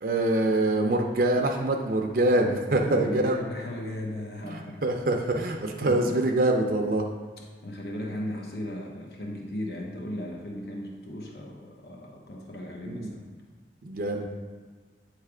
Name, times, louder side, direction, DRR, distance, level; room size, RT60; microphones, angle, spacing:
voice 1, 0.0-3.4 4.5-7.0 12.9-13.1 13.8-14.3, right 2 dB, 50° right, 2 dB, 0.5 m, -25 dB
voice 2, 2.7-4.9 5.8-6.2 7.4-13.3 14.1-14.3, left 1 dB, 60° left, -1 dB, 0.9 m, -36 dB
8.6 x 3.2 x 4.9 m, 1.5 s
head